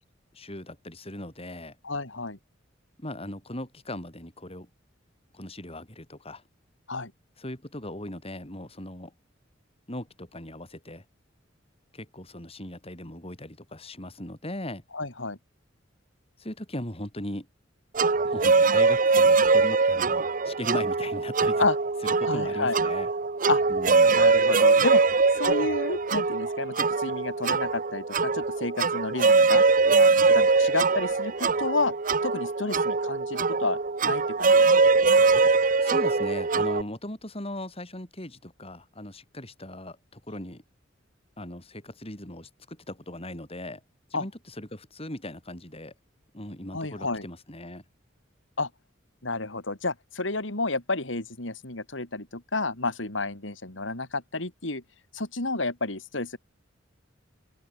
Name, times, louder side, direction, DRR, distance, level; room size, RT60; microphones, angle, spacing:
voice 1, 0.3-1.8 3.0-4.7 5.3-6.4 7.4-9.1 9.9-11.0 11.9-14.8 16.4-17.5 18.2-21.7 22.0-23.1 23.7-24.2 35.8-40.6 41.4-43.8 44.1-45.9 46.3-47.8, left 1 dB, 30° left, 7.3 m, -38 dB
voice 2, 1.8-2.4 6.9-7.1 14.9-15.4 21.6-21.8 22.2-22.8 23.5-23.6 24.1-25.0 25.4-29.6 30.0-31.9 32.2-35.0 44.1-44.2 46.7-47.3 48.6-48.7 49.2-54.8 55.1-56.4, left 3 dB, 75° left, 3.8 m, -30 dB
sound 1, 18.0-36.8, right 4 dB, 45° right, 0.9 m, -22 dB
open air
head